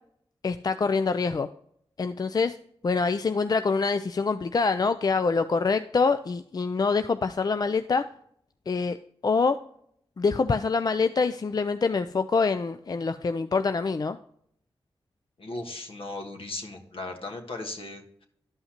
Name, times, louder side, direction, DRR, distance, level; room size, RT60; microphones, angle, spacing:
voice 1, 0.4-1.5 2.0-2.6 2.8-8.1 8.7-9.0 9.2-9.6 10.2-14.2, left 4 dB, 40° left, 10 dB, 0.4 m, -25 dB
voice 2, 15.4-18.2, left 2 dB, 65° left, 3 dB, 1.4 m, -37 dB
11.5 x 5.5 x 2.9 m, 0.68 s
cardioid pair, 45°, 10 cm